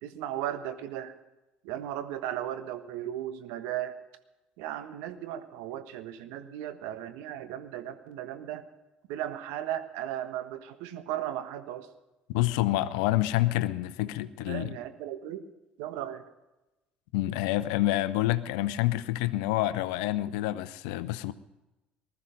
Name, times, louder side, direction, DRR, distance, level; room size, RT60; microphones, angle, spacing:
voice 1, 0.0-1.1 1.6-4.0 4.6-8.7 9.1-11.9 14.5-15.5 15.8-16.2, right 11 dB, 65° right, 9 dB, 1.4 m, -36 dB
voice 2, 12.3-14.7 17.1-21.3, left 15 dB, 65° left, 14 dB, 0.7 m, -28 dB
19.5 x 13.0 x 5.1 m, 1.0 s
figure-of-eight pair, 60°, 5 cm